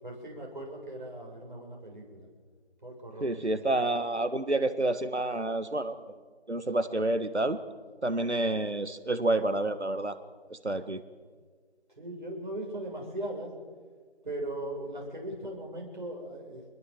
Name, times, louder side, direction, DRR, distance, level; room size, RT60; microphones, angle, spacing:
voice 1, 0.0-2.3 2.8-3.3 3.6-3.7 12.0-13.5 14.2-16.7, right 1 dB, 45° right, -1 dB, 7.5 m, -39 dB
voice 2, 3.2-6.0 6.5-7.6 8.0-10.2 10.5-11.0, right 2 dB, 90° right, 11 dB, 1.7 m, -29 dB
26.5 x 21.0 x 7.7 m, 1.5 s
figure-of-eight pair, 170°, 33 cm